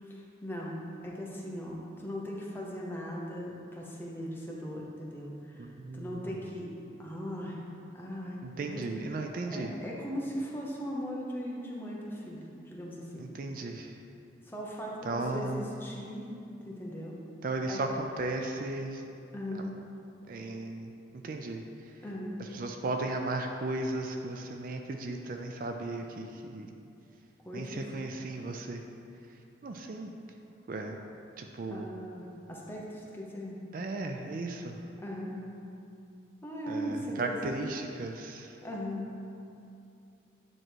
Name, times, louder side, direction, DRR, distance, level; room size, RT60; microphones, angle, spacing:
voice 1, 0.0-6.7 7.0-7.6 7.9-8.8 9.5-13.2 14.4-16.3 16.6-17.2 17.7-17.8 19.3-19.7 22.0-22.4 27.4-27.8 31.7-33.6 35.0-35.5 36.4-37.6 38.6-39.1, equal, 10° left, -3 dB, 0.7 m, -39 dB
voice 2, 5.6-6.2 8.4-9.7 13.2-13.9 15.0-15.6 17.4-19.0 19.5-19.7 20.3-20.9 21.2-21.6 22.5-26.7 27.5-28.8 29.6-30.1 30.7-31.0 31.4-31.9 33.7-34.8 36.7-38.6, right 2 dB, 50° right, 4 dB, 0.4 m, -35 dB
8.9 x 3.1 x 4.5 m, 2.6 s
head